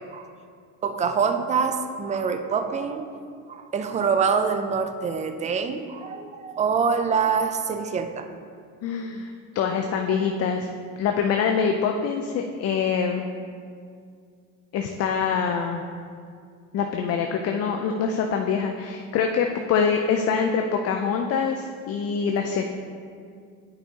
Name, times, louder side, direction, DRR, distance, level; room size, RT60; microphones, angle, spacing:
voice 1, 0.8-3.1 3.5-8.3 9.8-10.3, right 6 dB, 20° right, 8 dB, 0.4 m, -25 dB
voice 2, 8.8-10.7 11.0-13.3 14.7-15.8 16.7-22.6, left 6 dB, 40° left, 4 dB, 0.5 m, -25 dB
8.9 x 5.3 x 2.9 m, 2.2 s
supercardioid pair, 100°, 38 cm